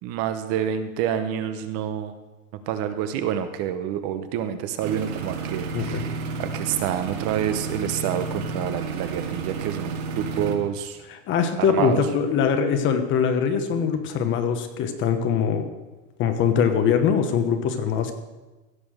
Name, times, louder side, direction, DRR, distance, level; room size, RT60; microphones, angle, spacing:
voice 1, 0.0-2.1 2.7-11.0 11.6-12.0, right 9 dB, 35° right, 9 dB, 0.9 m, -28 dB
sound 1, 4.8-10.5, right 4 dB, 55° right, 2.3 m, -31 dB
voice 2, 11.1-15.7 16.2-18.1, left 7 dB, 30° left, 8 dB, 1.1 m, -22 dB
16.0 x 7.0 x 6.4 m, 1.2 s
supercardioid pair, 155°, 41 cm